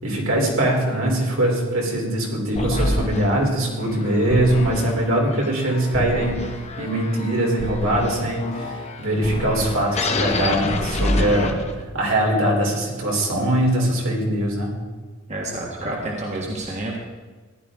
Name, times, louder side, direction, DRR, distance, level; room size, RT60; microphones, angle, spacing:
voice 1, 0.0-6.4 6.8-11.6 11.9-14.7, right 1 dB, 70° right, -1 dB, 3.5 m, -22 dB
sound 1, 2.6-12.0, left 1 dB, 30° left, 1.0 m, -27 dB
voice 2, 15.3-17.0, right 1 dB, 35° right, -2 dB, 1.7 m, -29 dB
15.0 x 11.5 x 3.7 m, 1.4 s
head